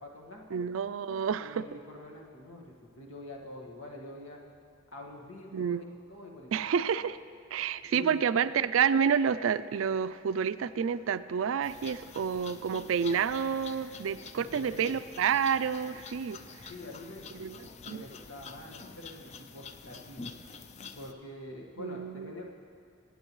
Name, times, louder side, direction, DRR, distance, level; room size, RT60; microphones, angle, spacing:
voice 1, 0.0-0.6 1.4-4.4 4.9-6.5 7.8-8.3 14.4-15.0 16.7-20.3 21.0-22.5, left 1 dB, 85° left, -1 dB, 1.7 m, -46 dB
voice 2, 0.5-1.6 5.5-5.8 6.5-7.2 7.5-16.4 17.3-17.6 17.9-18.0 21.8-22.3, right 7 dB, 80° right, 15 dB, 0.4 m, -29 dB
sound 1, 11.6-21.1, left 5 dB, 35° left, 0.4 m, -47 dB
24.5 x 9.0 x 3.1 m, 2.5 s
head